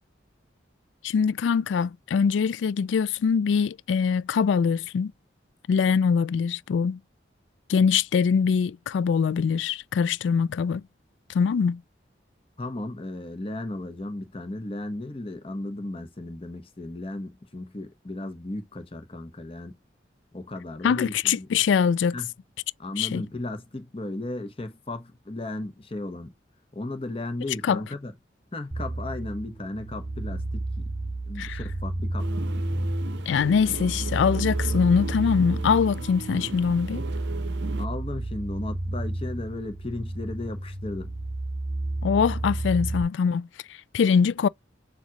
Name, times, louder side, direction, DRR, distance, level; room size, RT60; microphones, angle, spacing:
voice 1, 1.0-5.1 5.7-7.0 7.7-10.8 11.3-11.8 20.8-22.2 23.0-23.2 27.6-27.8 31.4-31.6 33.3-37.0 42.0-43.5 43.9-44.5, left 6 dB, 85° left, 0.3 m, -23 dB
voice 2, 12.6-19.8 20.3-21.5 22.1-22.3 22.8-26.3 26.7-28.1 28.5-30.7 31.3-32.3 37.8-41.1, left 2 dB, 30° left, 0.9 m, -35 dB
sound 1, 28.7-43.0, right 2 dB, 15° right, 1.3 m, -31 dB
sound 2, 32.2-37.9, right 3 dB, 75° right, 0.5 m, -37 dB
7.2 x 2.4 x 2.8 m
head